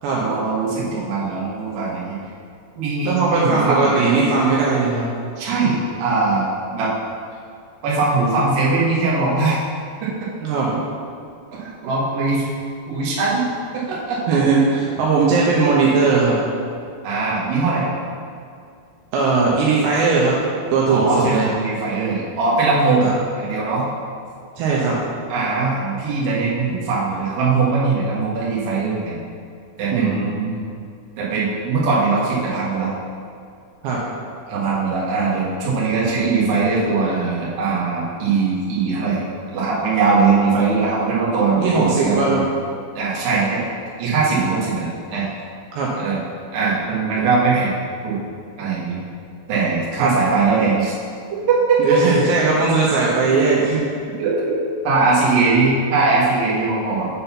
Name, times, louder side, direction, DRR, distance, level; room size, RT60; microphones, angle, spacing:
voice 1, 0.1-2.2 2.7-4.2 5.4-6.9 7.8-9.6 10.0-10.3 11.5-12.4 12.9-13.4 13.7-14.4 17.0-17.9 20.9-23.1 23.4-23.9 25.3-29.2 29.8-30.4 31.2-32.9 34.5-39.2 39.5-42.4 42.9-43.6 44.0-45.3 46.0-46.2 46.5-47.7 48.0-48.2 48.6-49.0 49.5-50.9 54.2-54.6 54.8-57.1, right 4 dB, 65° right, -6 dB, 2.7 m, -20 dB
voice 2, 3.0-5.1 10.4-10.8 14.3-16.4 19.1-20.4 20.7-21.5 23.0-23.1 24.6-25.0 29.9-30.6 33.8-34.0 41.6-42.4 45.7-45.9 50.0-50.1 51.8-53.8, right 4 dB, 80° right, -5 dB, 2.9 m, -18 dB
6.9 x 4.1 x 5.6 m, 2.3 s
omnidirectional pair, 5.2 m